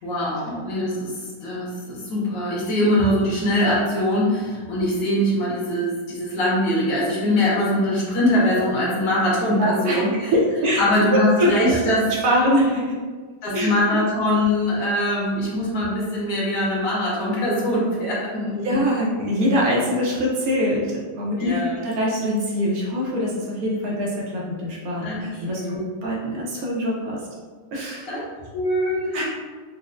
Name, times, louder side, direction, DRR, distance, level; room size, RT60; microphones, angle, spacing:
voice 1, 0.0-10.3 10.8-12.1 13.4-18.6 21.4-21.8 25.0-25.9 28.0-28.3 28.5-29.2, left 1 dB, 80° left, -6 dB, 1.4 m, -22 dB
voice 2, 9.6-10.8 11.4-11.5 12.2-13.0 13.5-14.0 18.5-27.2 27.7-28.1 29.1-29.2, equal, 65° right, -5 dB, 1.0 m, -23 dB
4.2 x 2.0 x 2.4 m, 1.5 s
omnidirectional pair, 1.8 m